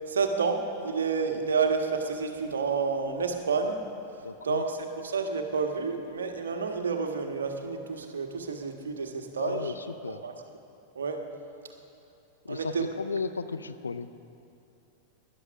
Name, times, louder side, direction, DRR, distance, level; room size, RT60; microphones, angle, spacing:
voice 1, 0.1-3.8 4.4-4.7 5.0-9.7 10.2-10.3 10.9-11.2 12.5-12.8, right 5 dB, 70° right, 4 dB, 1.4 m, -29 dB
voice 2, 4.2-4.6 9.4-10.3 12.4-14.1, left 4 dB, 75° left, 12 dB, 0.5 m, -35 dB
17.0 x 11.5 x 5.9 m, 2.6 s
figure-of-eight pair, 90°, 0 cm